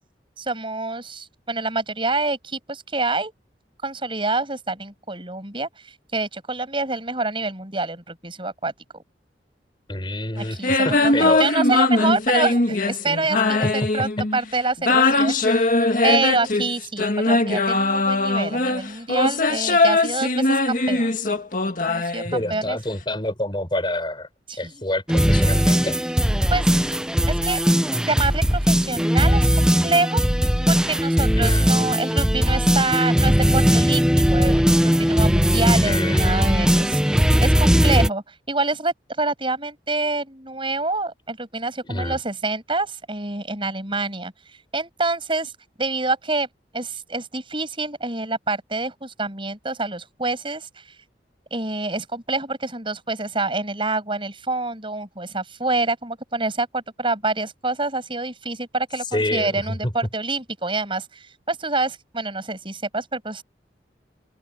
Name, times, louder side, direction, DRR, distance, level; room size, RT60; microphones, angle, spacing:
voice 1, 0.4-3.3 3.8-8.7 10.4-15.7 16.0-21.1 21.9-22.8 24.5-24.8 26.5-26.8 27.3-27.6 28.1-30.2 30.7-44.3 44.7-45.5 45.8-46.5 46.7-50.8 51.5-63.4, right 3 dB, 30° right, 7.0 m, -26 dB
voice 2, 9.9-10.6 10.8-11.5 13.6-13.9 22.2-24.3 24.6-26.0 31.4-31.7 35.8-36.6 41.8-42.2 59.1-59.9, left 1 dB, 25° left, 5.2 m, -27 dB
sound 1, 10.6-14.4 14.8-22.7, left 2 dB, 50° left, 1.9 m, -21 dB
sound 2, 25.1-38.1, equal, 5° right, 0.8 m, -19 dB
head